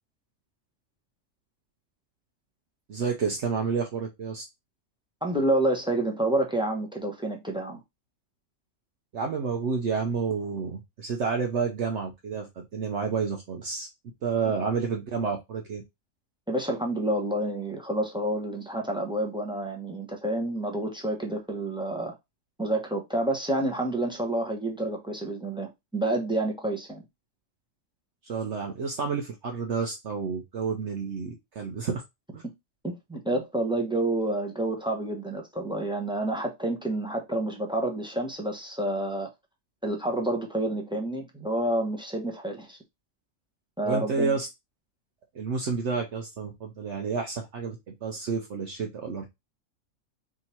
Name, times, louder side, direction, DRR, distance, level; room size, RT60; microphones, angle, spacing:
voice 1, 2.9-4.4 9.1-13.9 14.2-15.8 28.2-32.0 32.3-32.4 33.3-33.4 43.8-44.5 45.3-49.3, right 5 dB, 60° right, 1.0 m, -30 dB
voice 2, 5.2-7.8 16.5-22.1 22.6-27.0 32.4-32.5 32.8-39.3 39.8-42.8 43.8-44.3, right 1 dB, 5° right, 0.8 m, -29 dB
3.7 x 2.8 x 4.3 m
omnidirectional pair, 1.4 m